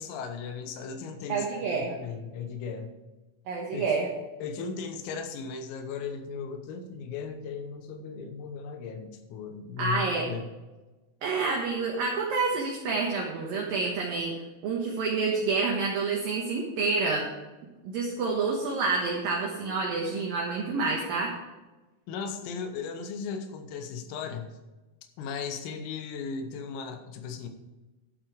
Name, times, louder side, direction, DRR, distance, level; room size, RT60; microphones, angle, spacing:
voice 1, 0.0-2.9 3.7-4.0 4.4-10.5 22.1-24.5 25.2-27.5, left 5 dB, 85° left, 7 dB, 3.8 m, -37 dB
voice 2, 1.3-2.0 3.5-4.1 9.8-10.3 11.2-14.3 14.6-17.3 17.8-21.3, right 4 dB, 70° right, -1 dB, 2.2 m, -28 dB
12.0 x 8.0 x 4.8 m, 1.2 s
omnidirectional pair, 5.9 m